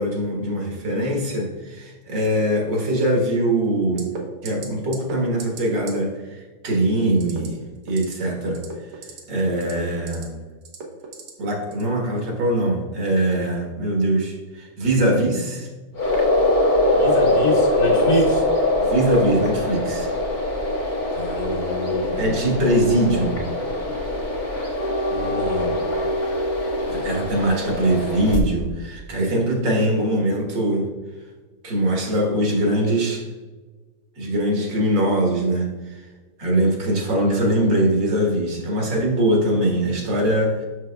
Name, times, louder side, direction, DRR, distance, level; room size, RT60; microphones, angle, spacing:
voice 1, 0.0-4.1 4.4-7.6 7.9-8.6 9.3-10.3 11.4-15.7 17.9-18.2 18.8-20.1 22.2-23.4 26.9-30.9 31.6-33.3 34.2-36.0 36.4-40.7, right 1 dB, 65° right, 0 dB, 1.9 m, -22 dB
sound 1, 4.0-4.2 4.5-4.7 4.9-5.1 5.4-5.6 5.9-6.0 7.2-7.5 7.8-8.1 8.5-9.2 9.6-10.2 10.6-11.3 11.7-11.9, right 5 dB, 80° right, 1.8 m, -36 dB
sound 2, 15.9-28.4, left 1 dB, 30° left, 1.0 m, -22 dB
voice 2, 16.9-18.4 21.1-22.4 25.1-25.8, left 1 dB, 60° left, -3 dB, 2.2 m, -26 dB
7.6 x 6.3 x 2.3 m, 1.3 s
omnidirectional pair, 2.2 m